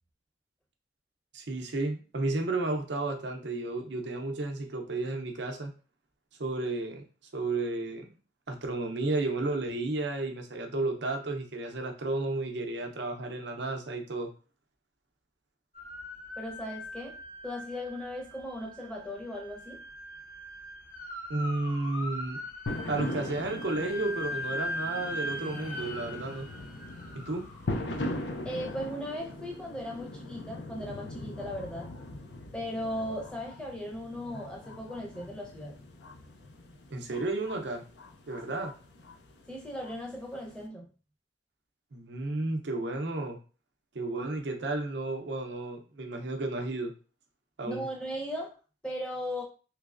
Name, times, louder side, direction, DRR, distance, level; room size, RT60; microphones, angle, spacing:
voice 1, 1.3-5.7 6.4-7.0 7.3-8.1 8.5-14.3 21.3-22.4 22.9-26.5 27.1-27.4 36.9-37.8 38.3-38.7 41.9-43.4 43.9-46.9 47.6-47.9, right 2 dB, 65° right, 3 dB, 0.6 m, -32 dB
sound 1, 15.8-28.8, left 1 dB, 45° left, 0.9 m, -41 dB
voice 2, 16.4-17.1 17.4-19.8 28.4-31.9 32.5-35.8 39.5-40.9 47.6-48.5 48.8-49.4, equal, 5° left, -1 dB, 0.7 m, -37 dB
sound 2, 22.7-40.6, left 1 dB, 65° left, 0.5 m, -41 dB
3.2 x 3.0 x 2.5 m, 0.36 s
head